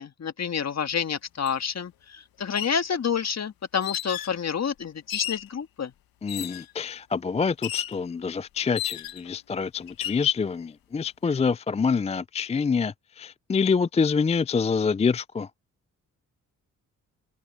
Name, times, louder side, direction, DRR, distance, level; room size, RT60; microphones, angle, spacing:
voice 1, 0.0-5.9, left 7 dB, 50° left, 1.8 m, -29 dB
sound 1, 1.5-1.6 2.4-2.8 3.8-4.4 5.1-5.5 6.3-6.7 7.6-8.0 8.8-9.3 9.9-10.2, left 12 dB, 80° left, 1.6 m, -33 dB
voice 2, 6.2-15.5, left 5 dB, 20° left, 0.4 m, -26 dB
supercardioid pair, 55°, 35 cm